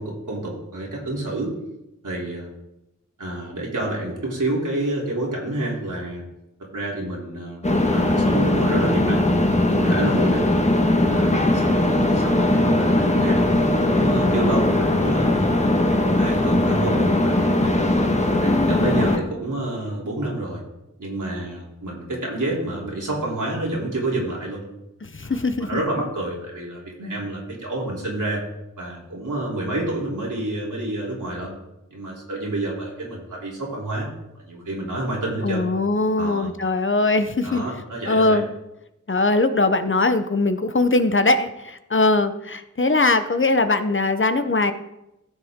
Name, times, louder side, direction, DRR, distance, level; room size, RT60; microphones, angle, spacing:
voice 1, 0.0-1.5 2.0-2.5 3.2-6.2 6.7-9.3 9.7-10.5 11.0-13.4 13.8-15.8 16.2-17.7 18.4-20.6 21.0-24.6 25.2-28.4 28.8-31.5 31.9-34.1 34.4-35.7 36.2-36.5 37.4-38.4, right 1 dB, 85° right, -4 dB, 3.2 m, -28 dB
sound 1, 7.6-19.2, left 1 dB, 20° left, 1.4 m, -19 dB
voice 2, 18.4-19.2 25.0-25.8 35.4-37.6 38.1-38.5 39.1-44.7, left 2 dB, 40° left, 9 dB, 0.8 m, -21 dB
16.0 x 6.9 x 3.7 m, 0.90 s
wide cardioid pair, 50°, 30 cm